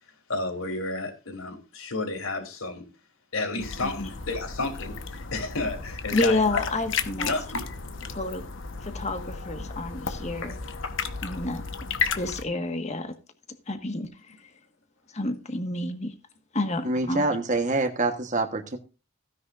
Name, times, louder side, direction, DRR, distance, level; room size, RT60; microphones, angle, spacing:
voice 1, 0.3-2.8 3.3-6.6 7.1-7.8 10.4-10.9, left 2 dB, 75° left, 3.4 m, -32 dB
sound 1, 3.6-12.4, left 5 dB, 60° left, 1.2 m, -33 dB
voice 2, 3.6-4.1 6.1-7.3 8.1-8.4 8.8-10.6 11.2-11.6 12.1-13.1 13.7-14.1 15.1-16.1 16.5-17.3, left 2 dB, 35° left, 1.5 m, -29 dB
voice 3, 16.8-18.8, right 2 dB, 35° right, 1.2 m, -26 dB
16.0 x 10.0 x 2.5 m
head